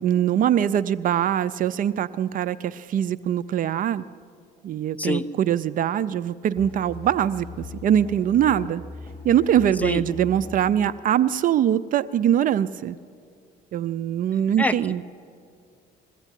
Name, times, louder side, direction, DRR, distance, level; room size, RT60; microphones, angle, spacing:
voice 1, 0.0-4.0 4.6-8.8 9.2-13.0 13.7-15.0, right 10 dB, 55° right, 15 dB, 0.5 m, -22 dB
voice 2, 5.0-5.2 9.8-10.0 14.6-14.7, left 2 dB, 10° left, 9 dB, 0.9 m, -24 dB
sound 1, 6.6-10.8, left 3 dB, 35° left, 5.3 m, -40 dB
22.0 x 15.0 x 9.9 m, 2.2 s
cardioid pair, 110°, 17 cm